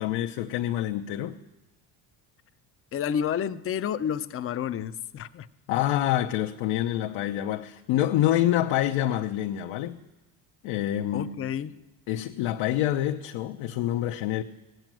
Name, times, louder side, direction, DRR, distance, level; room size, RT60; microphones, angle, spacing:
voice 1, 0.0-1.4 5.7-10.0 10.6-11.3 12.1-14.4, left 12 dB, 75° left, 0.8 m, -27 dB
voice 2, 2.9-5.5 11.1-11.8, left 8 dB, 30° left, 0.5 m, -30 dB
17.0 x 7.9 x 9.0 m
cardioid pair, 110°, 46 cm